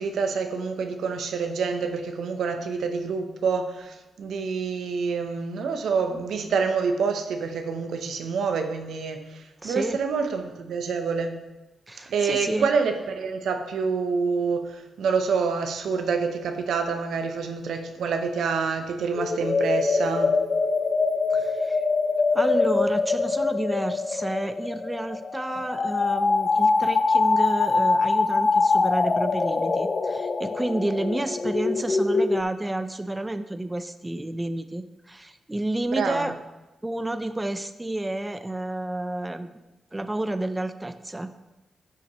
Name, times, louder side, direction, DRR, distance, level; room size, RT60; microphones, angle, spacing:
voice 1, 0.0-11.4 12.1-20.4 36.0-36.3, right 5 dB, 75° right, 6 dB, 0.8 m, -27 dB
voice 2, 9.6-10.0 11.9-12.7 21.3-21.8 22.3-36.3 36.8-39.5 39.9-41.3, right 1 dB, 20° right, 10 dB, 0.5 m, -30 dB
sound 1, 19.1-32.4, left 4 dB, 45° left, 0.5 m, -24 dB
10.5 x 5.8 x 3.0 m, 1.1 s
supercardioid pair, 45°, 0 cm